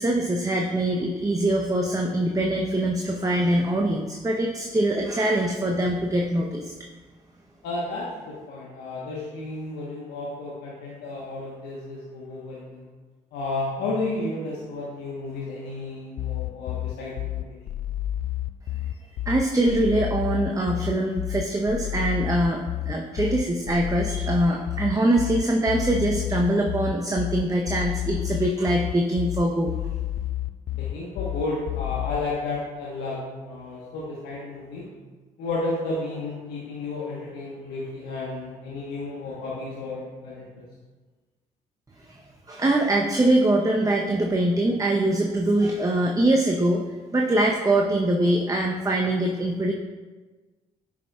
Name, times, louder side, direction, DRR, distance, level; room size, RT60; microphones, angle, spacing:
voice 1, 0.0-6.7 19.3-29.7 42.1-42.2 42.5-46.8 47.1-49.7, right 1 dB, 20° right, 1 dB, 0.7 m, -23 dB
voice 2, 7.6-12.9 13.3-17.6 30.7-34.9 35.4-40.7, left 2 dB, 75° left, -5 dB, 1.1 m, -32 dB
sound 1, 16.2-32.2, left 13 dB, 55° left, 0.4 m, -30 dB
8.1 x 6.0 x 2.3 m, 1.3 s
hypercardioid pair, 45°, 18 cm